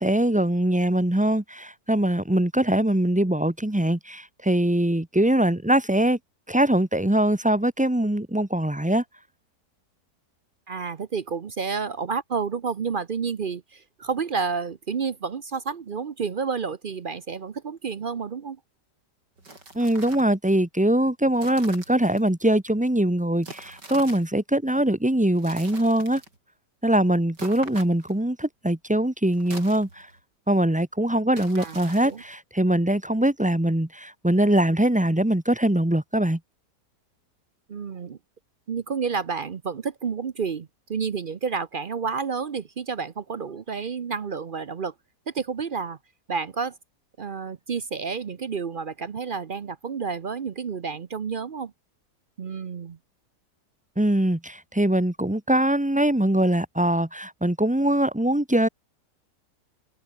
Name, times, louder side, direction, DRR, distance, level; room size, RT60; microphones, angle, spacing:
voice 1, 0.0-6.2 6.5-9.0 19.7-26.2 26.8-30.1 30.5-36.4 54.0-58.7, right 1 dB, 5° right, 1.0 m, -22 dB
voice 2, 10.7-18.6 31.6-32.2 37.7-38.2 38.7-44.9 45.3-46.0 46.3-46.8 47.2-51.7 52.4-53.0, right 5 dB, 50° right, 0.6 m, -30 dB
sound 1, 19.4-20.4 21.3-22.2 23.4-24.3 25.3-26.4 27.4-28.2 29.3-30.2 31.3-32.4, right 2 dB, 80° right, 6.6 m, -43 dB
omnidirectional pair, 1.8 m